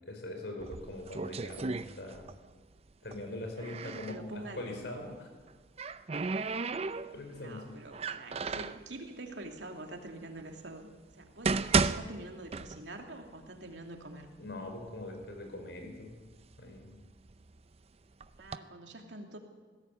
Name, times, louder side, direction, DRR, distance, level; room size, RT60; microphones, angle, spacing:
voice 1, 0.1-2.3 3.0-5.3 7.1-7.7 14.4-16.1 16.6-17.0, left 1 dB, 70° left, 3 dB, 5.0 m, -42 dB
sound 1, 0.6-2.5 2.8-4.2 5.3-7.4 7.9-8.8 9.6-9.7 10.4-10.5 11.1-13.1 13.4-13.5 14.2-14.3 14.7-15.4 15.9-17.6 18.2-18.6, right 4 dB, 35° right, 0.6 m, -34 dB
voice 2, 3.5-4.6 7.3-10.9 11.2-14.3 18.4-19.4, right 2 dB, 85° right, 3 dB, 2.7 m, -46 dB
19.5 x 16.0 x 8.4 m, 1.4 s
head